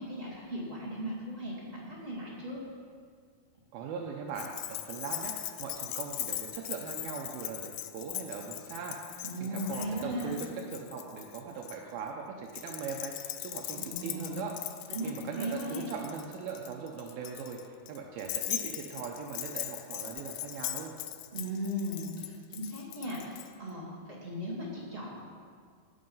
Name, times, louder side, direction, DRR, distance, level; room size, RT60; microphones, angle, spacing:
voice 1, 0.0-2.6 9.2-10.4 13.8-14.4 14.9-15.9 21.3-25.2, equal, 20° right, -6 dB, 1.9 m, -37 dB
voice 2, 3.7-14.6 15.0-20.9, right 6 dB, 80° right, 0 dB, 2.6 m, -40 dB
Keys jangling, 4.3-11.8 12.5-23.5, left 14 dB, 85° left, 1.9 m, -40 dB
18.5 x 6.5 x 5.5 m, 2.1 s
omnidirectional pair, 4.4 m